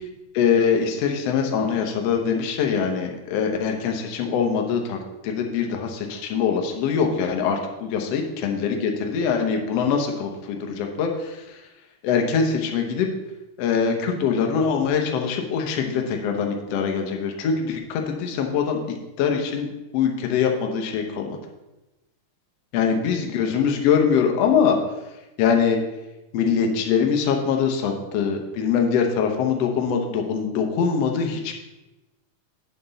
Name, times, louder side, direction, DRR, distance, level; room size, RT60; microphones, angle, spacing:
voice 1, 0.3-5.0 5.2-11.4 12.0-13.1 13.6-18.8 19.2-21.4 22.7-24.8 25.4-25.8 26.3-31.6, left 6 dB, 70° left, 3 dB, 1.6 m, -23 dB
8.9 x 5.9 x 4.0 m, 1.0 s
omnidirectional pair, 3.9 m